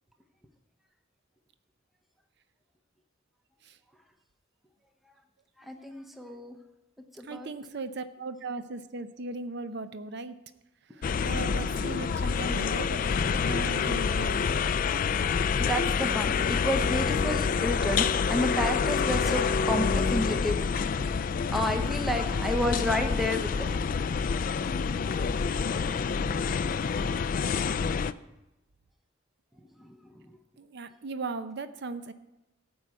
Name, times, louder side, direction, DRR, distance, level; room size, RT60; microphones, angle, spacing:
voice 1, 5.6-6.6 7.2-7.5 15.6-20.7 21.5-23.8 29.8-30.0, left 1 dB, ahead, 5 dB, 0.7 m, -30 dB
voice 2, 7.3-10.4 11.2-13.0 13.4-14.5 30.6-32.1, right 3 dB, 60° right, 11 dB, 0.6 m, -37 dB
sound 1, 11.0-28.1, left 5 dB, 45° left, 0.3 m, -27 dB
14.0 x 4.8 x 8.3 m, 0.97 s
head